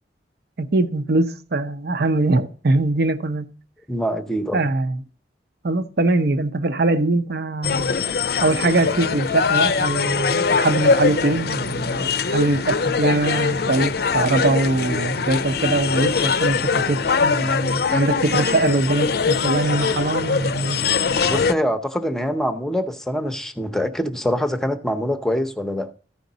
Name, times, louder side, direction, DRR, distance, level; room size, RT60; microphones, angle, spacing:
voice 1, 0.6-3.5 4.5-5.0 5.6-7.9 8.4-20.8, right 2 dB, 60° right, 0.7 m, -22 dB
voice 2, 3.9-4.6 21.2-25.9, equal, 5° left, 0.7 m, -24 dB
sound 1, 7.6-21.5, left 5 dB, 60° left, 0.5 m, -22 dB
14.0 x 5.2 x 3.9 m
head